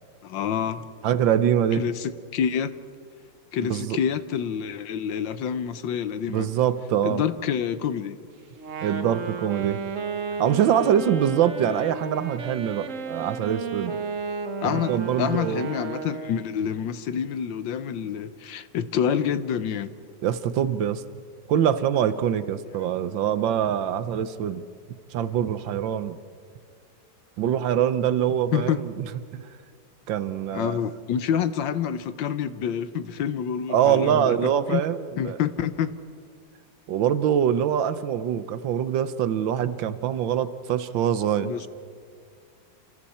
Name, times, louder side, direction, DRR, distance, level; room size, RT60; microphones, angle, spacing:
voice 1, 0.2-0.9 1.7-2.7 3.5-6.5 7.0-8.2 14.6-14.9 15.2-19.9 28.5-28.8 30.5-34.8 35.2-35.9 41.4-41.7, left 8 dB, 70° left, 1.5 m, -27 dB
voice 2, 1.0-1.9 3.7-4.0 6.3-7.2 8.8-9.8 10.4-14.0 14.6-15.7 20.2-21.0 21.5-24.6 25.1-26.2 27.4-29.0 29.3-29.4 30.1-30.8 33.7-35.4 36.9-41.5, right 9 dB, 75° right, 1.5 m, -24 dB
Wind instrument woodwind instrument, 8.5-16.5, right 5 dB, 45° right, 1.4 m, -33 dB
28.0 x 27.5 x 4.3 m
omnidirectional pair, 2.2 m